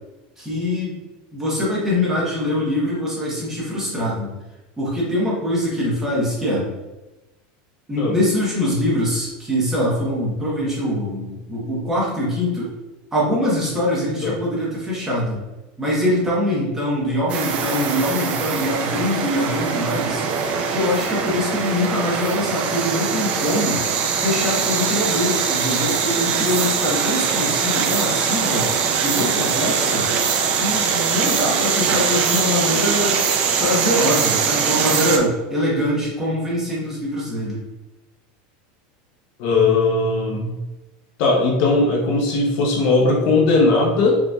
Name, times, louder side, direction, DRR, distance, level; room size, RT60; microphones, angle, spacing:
voice 1, 0.4-1.0 1.3-4.3 4.8-6.7 7.9-12.8 13.1-15.4 15.8-20.2 20.7-23.8 24.2-28.7 29.0-30.1 30.5-33.2 33.6-37.6, left 1 dB, 10° right, -6 dB, 1.0 m, -23 dB
sound 1, 17.3-35.2, right 6 dB, 30° right, 0.4 m, -22 dB
voice 2, 39.4-40.5 41.2-44.2, left 3 dB, 45° left, -1 dB, 0.7 m, -18 dB
5.0 x 3.1 x 2.3 m, 1.1 s
supercardioid pair, 175°, 4 cm